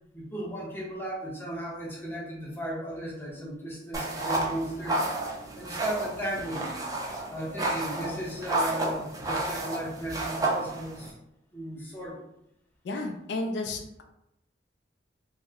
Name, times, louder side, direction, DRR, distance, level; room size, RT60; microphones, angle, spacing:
voice 1, 0.1-5.0 5.5-6.7 7.3-11.1 11.5-12.2, right 1 dB, 15° left, -5 dB, 0.9 m, -35 dB
sound 1, 3.9-11.1, right 2 dB, 20° right, 0.5 m, -31 dB
voice 2, 12.8-14.0, left 2 dB, 75° left, 4 dB, 0.4 m, -32 dB
3.1 x 2.1 x 3.5 m, 0.82 s
head